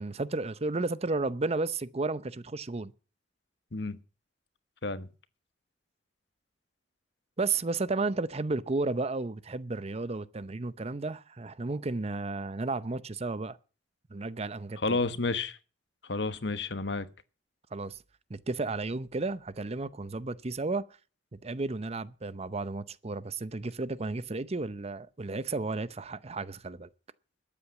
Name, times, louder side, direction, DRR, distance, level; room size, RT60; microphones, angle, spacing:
voice 1, 0.0-2.9 7.4-13.6 14.1-15.0 17.7-18.0 18.3-20.8 21.3-26.9, right 3 dB, 35° right, 0.7 m, -33 dB
voice 2, 14.8-15.6 16.0-17.1, left 3 dB, 70° left, 1.2 m, -31 dB
13.0 x 8.7 x 7.1 m
head